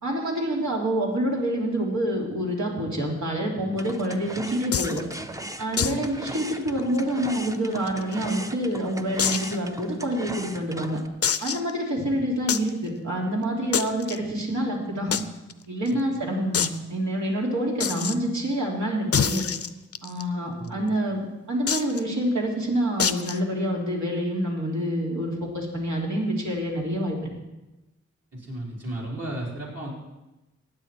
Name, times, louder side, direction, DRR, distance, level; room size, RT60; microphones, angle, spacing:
voice 1, 0.0-5.0 5.6-11.0 11.4-15.2 15.7-19.4 20.0-27.3, equal, 75° right, -3 dB, 3.3 m, -27 dB
sound 1, 3.8-11.1, right 1 dB, 10° right, 0.7 m, -38 dB
sound 2, 4.7-5.0 5.8-6.0 6.3-6.4 6.8-6.9 7.5-8.3 9.2-9.6 10.1-10.2 11.2-11.7 12.5-12.7 13.7-14.2 15.1-15.2 15.5-15.6 15.9-16.0 16.5-16.8 17.8-18.2 19.1-20.2 21.7-22.0 23.0-23.4, left 7 dB, 55° left, 0.6 m, -26 dB
voice 2, 5.8-6.1 15.9-16.0 20.6-20.9 28.3-29.9, right 1 dB, 55° right, -4 dB, 4.5 m, -35 dB
15.5 x 9.6 x 4.5 m, 1.0 s
wide cardioid pair, 85°, 29 cm